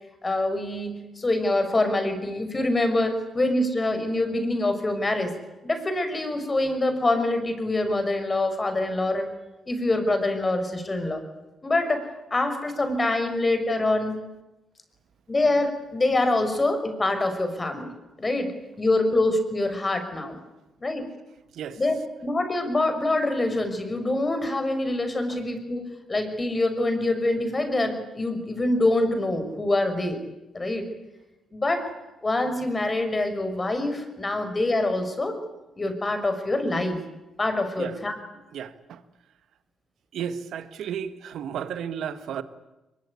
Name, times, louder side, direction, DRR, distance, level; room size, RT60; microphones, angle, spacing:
voice 1, 0.2-5.3 5.6-9.3 9.7-11.2 11.6-12.1 12.3-14.2 15.3-20.4 20.8-21.1 21.8-21.9 22.2-25.8 26.1-30.2 30.5-30.9 31.5-31.9 32.2-35.4 35.8-37.0 37.4-38.1, left 2 dB, 30° left, 5.8 m, -25 dB
voice 2, 38.5-39.0 40.1-42.4, right 8 dB, 75° right, 1.6 m, -33 dB
22.5 x 21.5 x 9.7 m
supercardioid pair, 60°, 0 cm